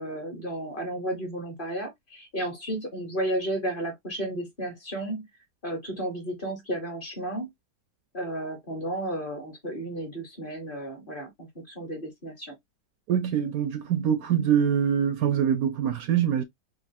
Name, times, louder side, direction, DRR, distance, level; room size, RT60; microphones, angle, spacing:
voice 1, 0.0-5.2 5.6-7.5 8.1-11.5 11.7-12.5, right 1 dB, 35° left, 1.1 m, -33 dB
voice 2, 13.1-16.4, right 8 dB, 70° right, 0.9 m, -24 dB
3.8 x 2.5 x 2.6 m
omnidirectional pair, 1.7 m